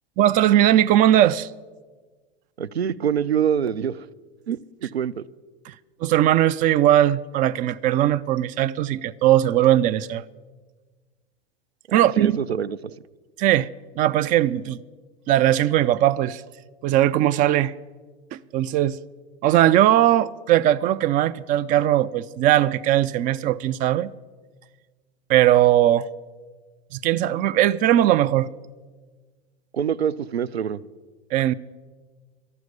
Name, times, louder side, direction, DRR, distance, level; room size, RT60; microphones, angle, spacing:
voice 1, 0.2-1.5 5.7-5.8 6.0-10.2 11.9-12.4 13.4-13.7 14.0-14.8 15.3-16.4 16.8-17.7 18.3-18.9 19.4-24.1 25.3-26.1 26.9-28.5 31.3-31.5, right 12 dB, 25° right, 0.4 m, -19 dB
voice 2, 2.6-4.1 4.5-5.2 11.9-12.8 29.7-30.8, right 8 dB, 80° right, 0.6 m, -25 dB
12.5 x 12.0 x 8.4 m
figure-of-eight pair, 90°, 31 cm